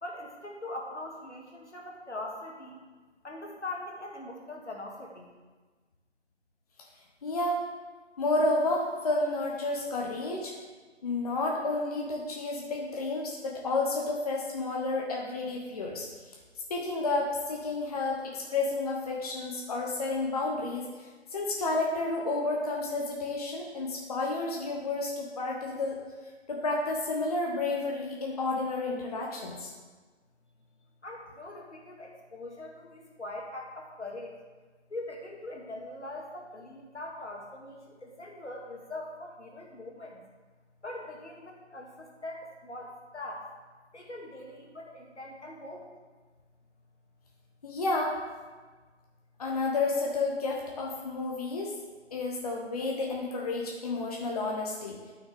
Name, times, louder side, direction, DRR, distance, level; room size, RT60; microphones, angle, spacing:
voice 1, 0.0-2.8 3.2-5.3 31.0-34.4 34.9-40.2 40.8-43.5 43.9-45.8, left 2 dB, 70° left, 0 dB, 2.0 m, -42 dB
voice 2, 7.2-7.6 8.2-10.5 11.0-16.4 16.7-26.0 26.5-29.7 47.6-48.2 49.4-51.7 52.1-55.1, left 2 dB, 30° left, -1 dB, 1.0 m, -31 dB
11.5 x 6.3 x 3.5 m, 1.4 s
figure-of-eight pair, 145°, 35 cm